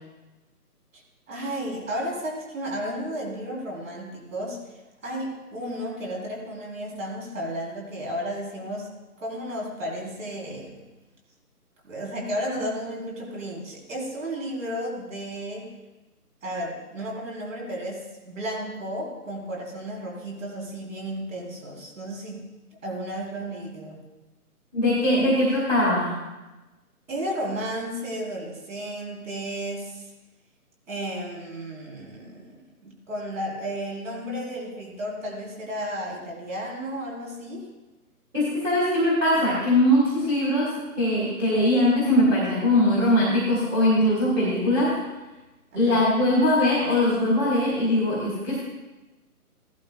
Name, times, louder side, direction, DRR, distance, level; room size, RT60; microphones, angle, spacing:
voice 1, 1.3-4.8 5.0-8.9 9.2-10.8 11.8-15.7 16.4-22.4 22.8-24.0 27.1-30.1 30.9-37.7 45.7-46.1, equal, 55° right, -2 dB, 3.8 m, -33 dB
voice 2, 24.7-26.1 38.3-45.0 45.7-48.6, left 1 dB, 10° right, -8 dB, 1.5 m, -21 dB
16.0 x 11.5 x 2.3 m, 1.1 s
hypercardioid pair, 165°, 46 cm